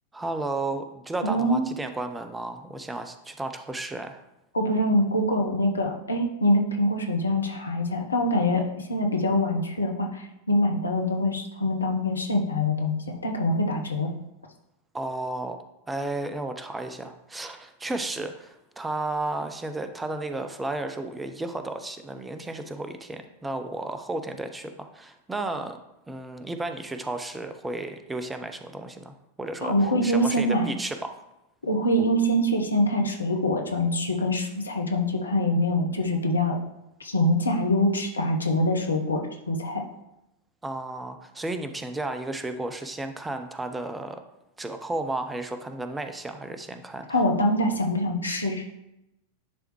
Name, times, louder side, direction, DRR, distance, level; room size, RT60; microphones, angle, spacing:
voice 1, 0.1-4.2 14.9-15.6 15.9-25.8 26.1-29.7 30.0-31.1 40.6-44.2 44.6-47.1, right 2 dB, 10° right, 7 dB, 0.6 m, -33 dB
voice 2, 1.2-1.7 4.5-14.1 29.6-30.7 31.6-36.6 37.0-39.8 47.1-48.7, left 1 dB, 75° left, 2 dB, 0.9 m, -24 dB
10.5 x 3.5 x 3.1 m, 0.88 s
figure-of-eight pair, 90°, 0 cm